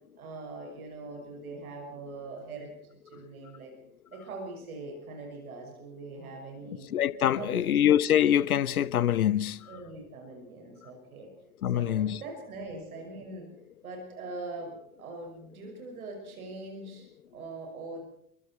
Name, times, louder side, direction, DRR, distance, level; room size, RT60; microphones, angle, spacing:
voice 1, 0.2-3.8 4.1-6.9 7.3-7.8 9.7-11.3 11.7-13.5 13.8-18.0, right 3 dB, 75° right, 6.0 m, -42 dB
voice 2, 6.9-9.7 11.6-12.2, left 10 dB, 80° left, 0.8 m, -24 dB
29.0 x 22.5 x 4.4 m
figure-of-eight pair, 70°, 43 cm